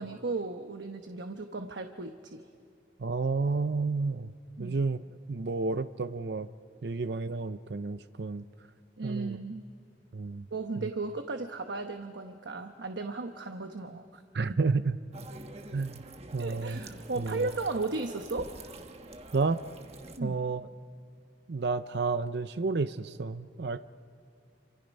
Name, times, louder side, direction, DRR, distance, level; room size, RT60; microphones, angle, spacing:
voice 1, 0.0-2.5 4.6-4.8 9.0-9.7 10.5-14.2 16.4-18.5 20.2-20.4, right 3 dB, 80° right, 6 dB, 1.0 m, -35 dB
voice 2, 3.0-4.3 4.6-5.0 5.3-6.5 6.8-8.5 9.0-9.4 10.1-10.5 10.8-10.9 14.3-15.0 15.7-16.0 16.3-16.8 17.2-17.5 19.3-19.6 20.2-20.7 21.5-23.8, right 4 dB, 65° right, 12 dB, 0.6 m, -31 dB
sound 1, 15.1-20.2, right 2 dB, 35° right, 1.2 m, -47 dB
27.5 x 26.5 x 5.4 m, 2.4 s
head